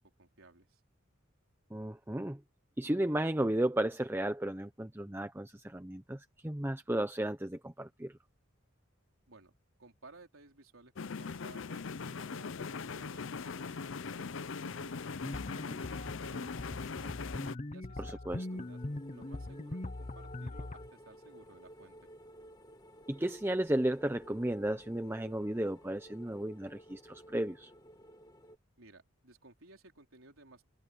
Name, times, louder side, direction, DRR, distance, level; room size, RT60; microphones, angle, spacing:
voice 1, 0.2-0.8 9.3-9.5 9.8-17.1 17.7-18.8 19.1-22.1 28.8-30.6, right 2 dB, 85° right, 4.0 m, -58 dB
voice 2, 1.7-2.4 2.8-8.1 18.0-18.5 23.1-27.7, right 1 dB, 10° right, 0.7 m, -34 dB
sound 1, 11.0-17.6, left 5 dB, 70° left, 0.6 m, -40 dB
sound 2, 15.2-20.9, left 2 dB, 35° left, 0.8 m, -41 dB
sound 3, 18.3-28.6, equal, 20° left, 2.1 m, -55 dB
head